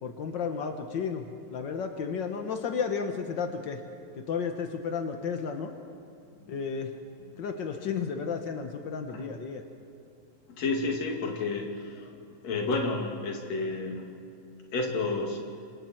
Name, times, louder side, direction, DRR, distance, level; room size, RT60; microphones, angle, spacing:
voice 1, 0.0-3.8 4.2-5.7 6.5-6.9 7.4-9.6, left 6 dB, 85° left, 5 dB, 1.0 m, -33 dB
voice 2, 10.6-12.1 12.4-14.1 14.7-15.4, left 3 dB, 50° left, 1 dB, 3.4 m, -30 dB
26.5 x 26.5 x 4.5 m, 2.6 s
omnidirectional pair, 3.9 m